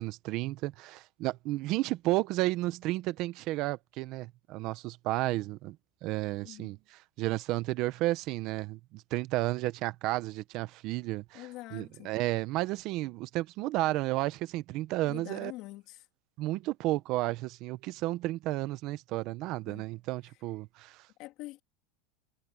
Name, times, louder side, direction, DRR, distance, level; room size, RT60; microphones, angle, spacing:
voice 1, 0.0-5.8 6.0-15.5 16.4-21.0, right 18 dB, 50° right, 0.9 m, -32 dB
voice 2, 11.3-12.1 15.0-16.0 19.7-19.8 21.2-21.6, left 18 dB, 50° left, 3.4 m, -45 dB
supercardioid pair, 150°, 0 cm